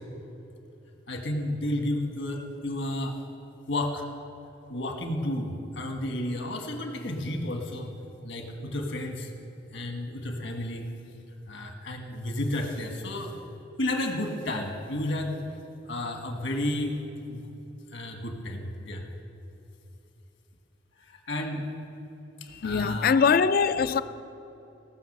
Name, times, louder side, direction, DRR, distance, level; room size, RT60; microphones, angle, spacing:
voice 1, 1.1-3.2 3.7-4.0 4.7-7.9 8.2-9.3 9.7-10.9 11.5-13.4 13.8-15.4 15.8-17.0 17.3-17.5 17.9-19.0 21.0-21.7 22.4-23.2, left 1 dB, 75° left, 1.5 m, -32 dB
voice 2, 22.5-24.0, left 5 dB, 50° left, 0.4 m, -22 dB
18.0 x 6.0 x 6.6 m
head